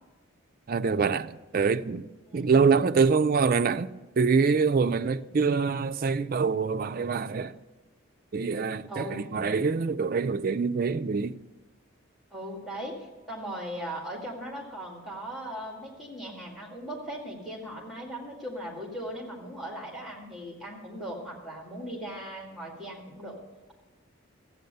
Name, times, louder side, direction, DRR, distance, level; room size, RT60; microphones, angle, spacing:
voice 1, 0.7-2.1 2.3-7.5 8.3-11.4, right 5 dB, 40° right, 0.4 m, -25 dB
voice 2, 2.3-2.7 8.9-9.2 12.3-23.4, equal, ahead, 2.0 m, -38 dB
14.5 x 8.5 x 6.7 m
head